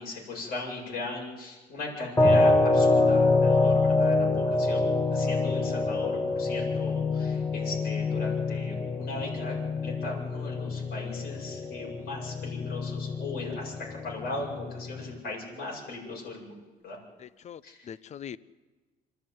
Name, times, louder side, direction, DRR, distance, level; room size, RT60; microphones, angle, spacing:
voice 1, 0.0-16.5 16.8-17.0 17.6-17.8, left 3 dB, 65° left, -2 dB, 7.9 m, -38 dB
sound 1, 2.2-15.2, left 3 dB, 15° left, 1.9 m, -26 dB
voice 2, 17.2-18.4, left 8 dB, 45° left, 18 dB, 0.7 m, -42 dB
26.5 x 12.0 x 9.5 m, 1.3 s
cardioid pair, 110°, 17 cm